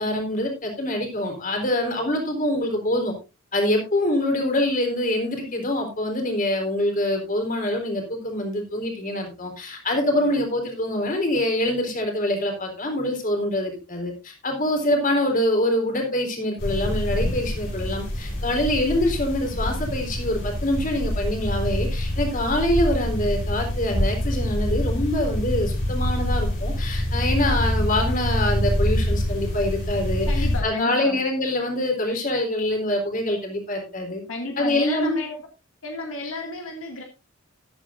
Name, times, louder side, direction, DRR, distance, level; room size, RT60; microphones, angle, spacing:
voice 1, 0.0-3.1 3.5-34.2 34.6-35.2, left 1 dB, 40° left, 3 dB, 4.1 m, -25 dB
sound 1, 16.6-30.6, equal, 60° left, 8.0 m, -25 dB
voice 2, 30.3-31.2 34.3-35.4 35.8-37.0, left 2 dB, 80° left, 2 dB, 2.3 m, -32 dB
14.5 x 11.5 x 2.6 m, 0.29 s
head